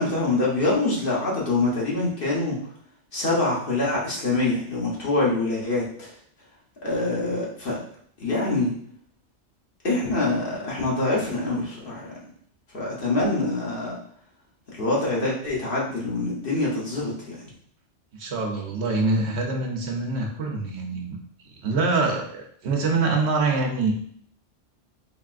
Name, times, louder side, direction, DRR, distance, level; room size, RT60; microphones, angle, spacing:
voice 1, 0.0-2.6 3.1-6.1 6.8-7.8 8.2-8.7 9.8-12.0 12.7-14.0 14.7-17.4, left 2 dB, 50° left, -5 dB, 1.2 m, -25 dB
voice 2, 18.2-21.2 21.6-23.9, right 3 dB, 70° right, 1 dB, 1.0 m, -25 dB
4.0 x 3.5 x 2.5 m, 0.62 s
omnidirectional pair, 1.2 m